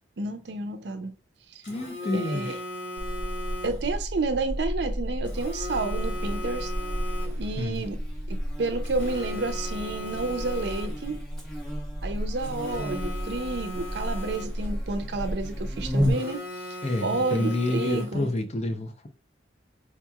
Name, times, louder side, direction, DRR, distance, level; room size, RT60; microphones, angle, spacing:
voice 1, 0.2-1.1 1.5-1.6 2.1-2.5 3.6-6.7 7.4-8.0 8.3-11.2 12.0-18.3, right 3 dB, 70° right, 0.5 m, -30 dB
Telephone, 1.6-4.0 5.2-7.6 8.8-11.2 12.4-14.8 16.0-18.4, left 1 dB, 85° left, 2.0 m, -38 dB
voice 2, 1.7-2.6 7.6-7.8 16.8-19.1, left 2 dB, 35° left, 0.5 m, -29 dB
Buzz, 3.0-16.1, equal, ahead, 1.1 m, -32 dB
4.6 x 2.9 x 2.3 m
head